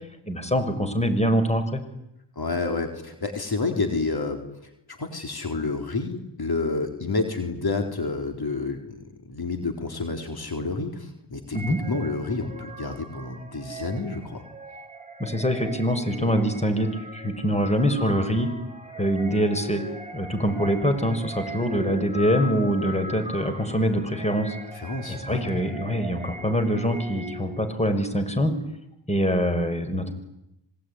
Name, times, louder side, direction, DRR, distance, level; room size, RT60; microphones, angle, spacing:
voice 1, 0.3-1.8 11.5-11.8 15.2-18.5 19.0-19.8 20.1-24.6 25.1-28.5 29.1-30.1, equal, 15° left, 8 dB, 6.0 m, -24 dB
voice 2, 2.4-4.4 5.0-14.4 24.7-25.5, left 3 dB, 55° left, 5 dB, 4.2 m, -29 dB
sound 1, 11.5-27.7, right 1 dB, 15° right, 6.8 m, -39 dB
26.5 x 22.5 x 10.0 m, 0.84 s
cardioid pair, 55°, 44 cm